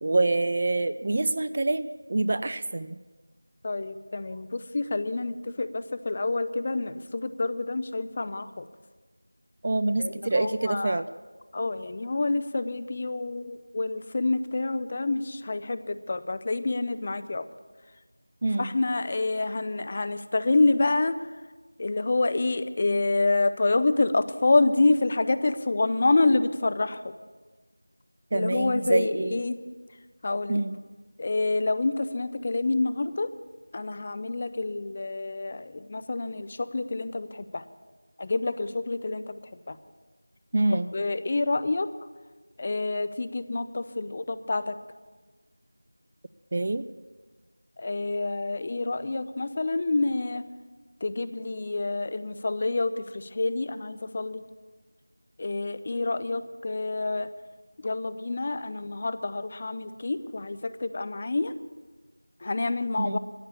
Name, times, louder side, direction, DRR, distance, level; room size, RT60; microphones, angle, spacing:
voice 1, 0.0-3.0 9.6-11.1 18.4-18.7 28.3-29.4 30.5-30.8 40.5-40.9 46.5-46.8 63.0-63.2, right 2 dB, 30° right, 13 dB, 0.4 m, -26 dB
voice 2, 3.6-8.7 10.0-11.0 11.5-17.4 18.6-21.1 21.8-27.0 28.3-29.6 30.2-30.6 31.2-33.3 33.7-37.6 38.2-39.3 39.7-39.8 40.7-41.9 42.6-44.8 47.8-50.5 51.0-54.4 55.4-57.3 57.8-61.5 62.4-63.2, left 2 dB, 25° left, 12 dB, 0.5 m, -27 dB
15.0 x 8.6 x 8.2 m, 1.3 s
figure-of-eight pair, 170°, 0 cm